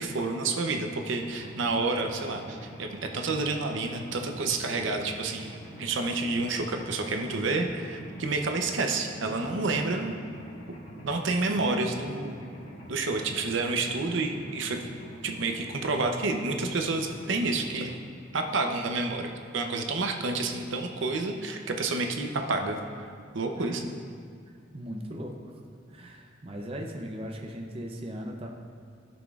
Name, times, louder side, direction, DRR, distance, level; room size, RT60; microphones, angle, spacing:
voice 1, 0.0-10.2 11.0-12.5 12.9-14.8 15.2-18.0 18.3-22.8 23.3-23.8, right 3 dB, 75° right, 4 dB, 0.7 m, -29 dB
Mechanisms, 1.1-18.0, equal, 70° left, 1.7 m, -46 dB
voice 2, 24.7-25.5 25.9-28.5, equal, 30° right, 1 dB, 0.5 m, -38 dB
14.0 x 6.0 x 2.4 m, 2.3 s
head